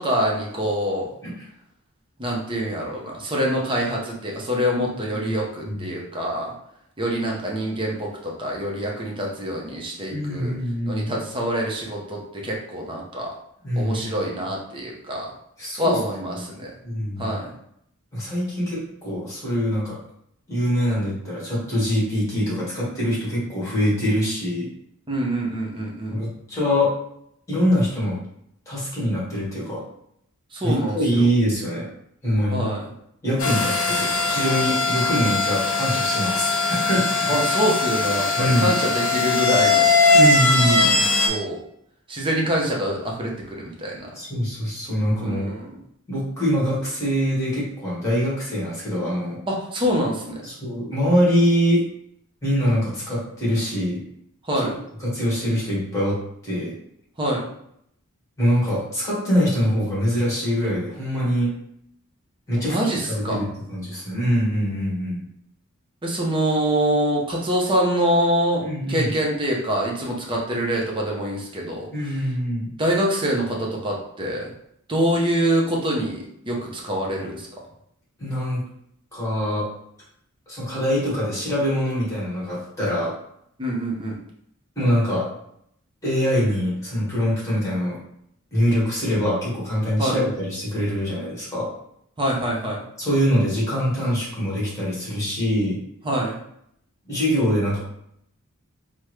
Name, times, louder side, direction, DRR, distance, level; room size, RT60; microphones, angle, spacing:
voice 1, 0.0-1.1 2.2-6.5 7.0-10.5 10.9-13.3 13.8-15.3 15.8-16.7 17.2-17.5 25.1-26.2 30.5-31.0 32.5-32.8 37.3-39.9 40.7-40.9 41.3-41.6 42.1-44.1 45.2-45.7 49.5-50.3 54.5-54.8 57.2-57.5 62.6-63.4 66.0-71.9 72.8-74.5 74.9-77.5 83.6-84.1 90.0-90.2 92.2-92.8 96.0-96.4, equal, 25° right, -2 dB, 0.7 m, -25 dB
voice 2, 5.1-5.8 10.1-11.1 13.6-14.3 15.6-16.0 16.2-16.4 16.8-17.4 18.1-20.0 20.5-24.7 26.1-26.9 27.5-28.2 28.7-29.8 30.6-31.9 32.2-32.7 33.2-37.3 38.4-38.7 40.1-41.1 44.1-45.5 46.1-49.4 50.4-51.8 52.4-54.0 54.6-54.7 55.0-56.7 58.4-61.5 62.5-65.2 68.6-69.1 71.9-72.7 78.2-78.6 79.1-79.7 80.5-83.1 84.7-85.3 86.0-88.0 88.5-91.7 93.0-95.8 97.1-97.8, equal, 15° left, -7 dB, 1.5 m, -24 dB
sound 1, 33.4-41.3, left 3 dB, 75° left, 0.7 m, -20 dB
3.5 x 2.1 x 3.1 m, 0.73 s
head